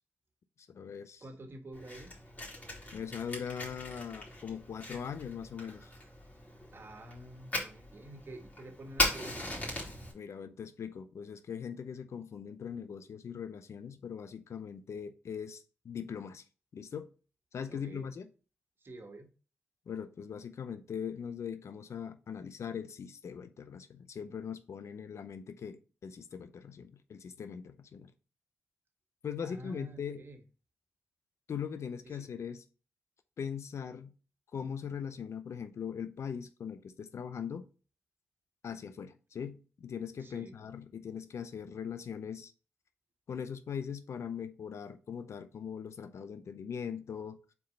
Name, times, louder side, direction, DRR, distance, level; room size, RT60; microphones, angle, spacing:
voice 1, 0.7-1.2 2.9-5.9 10.1-16.4 16.7-17.1 17.5-18.3 19.9-28.1 29.2-30.2 31.5-32.6 33.4-34.1 34.5-37.7 38.6-42.5 43.3-47.4, left 7 dB, 70° left, 0.6 m, -40 dB
voice 2, 1.2-2.1 6.7-9.7 17.7-18.1 18.8-19.3 29.4-30.4 32.0-32.2 40.2-40.5, right 1 dB, 50° right, 1.6 m, -49 dB
Fire, 1.7-10.1, left 1 dB, 30° left, 3.2 m, -38 dB
4.5 x 4.3 x 5.3 m
cardioid pair, 50°, 5 cm